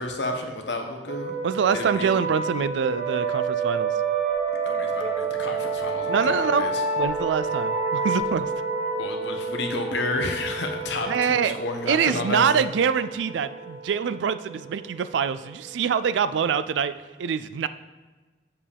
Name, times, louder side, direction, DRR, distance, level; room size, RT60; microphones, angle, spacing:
voice 1, 0.0-1.4 1.7-2.1 4.6-6.8 9.0-12.7, left 2 dB, 80° left, 4 dB, 1.0 m, -31 dB
sound 1, 1.1-16.4, right 4 dB, 40° right, 2.0 m, -29 dB
voice 2, 1.4-3.9 6.1-6.6 7.0-8.5 11.1-11.5 11.9-16.9 17.2-17.7, right 7 dB, 90° right, 13 dB, 0.3 m, -25 dB
7.4 x 7.0 x 3.4 m, 1.3 s
head